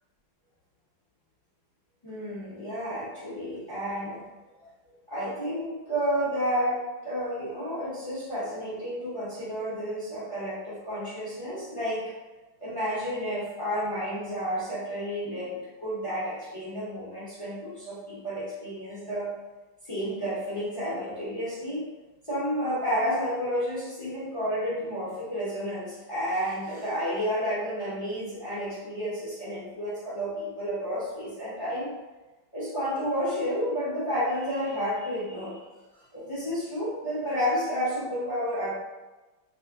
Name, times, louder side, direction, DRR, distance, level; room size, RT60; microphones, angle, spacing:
voice 1, 2.0-4.2 4.6-4.7 5.1-12.1 12.6-19.3 19.8-21.8 22.2-31.9 32.5-35.5 36.1-38.7, equal, 30° left, -10 dB, 0.6 m, -31 dB
3.0 x 2.4 x 3.5 m, 1.2 s
omnidirectional pair, 2.0 m